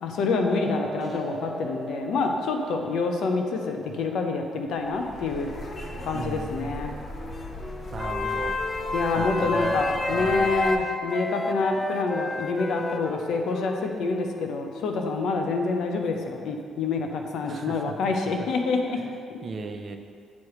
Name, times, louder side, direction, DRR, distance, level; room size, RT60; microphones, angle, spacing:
voice 1, 0.0-5.5 6.0-7.0 8.9-19.0 19.3-19.4, left 3 dB, 75° left, 4 dB, 0.7 m, -27 dB
sound 1, 0.5-7.6, right 2 dB, ahead, 1.4 m, -40 dB
sound 2, 4.8-10.8, left 2 dB, 40° left, 0.7 m, -32 dB
voice 2, 6.1-6.7 7.9-8.6 9.1-10.6 17.4-18.5 19.0-19.1 19.4-20.0, right 4 dB, 45° right, 5 dB, 0.6 m, -36 dB
Wind instrument woodwind instrument, 7.1-15.1, left 2 dB, 20° left, 0.3 m, -34 dB
8.4 x 3.2 x 4.8 m, 2.2 s
cardioid pair, 90°, 0 cm